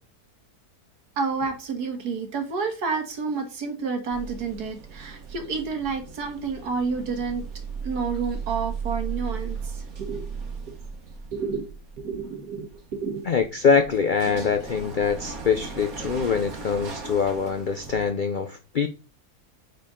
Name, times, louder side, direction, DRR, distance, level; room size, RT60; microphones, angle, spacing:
voice 1, 1.2-7.4 7.8-10.3 11.3-11.7 12.0-13.3, right 5 dB, 80° right, 2.0 m, -30 dB
sound 1, 4.1-18.1, right 5 dB, 65° right, 1.7 m, -37 dB
voice 2, 13.2-18.9, left 6 dB, 70° left, 0.4 m, -24 dB
8.5 x 4.5 x 3.7 m
omnidirectional pair, 1.6 m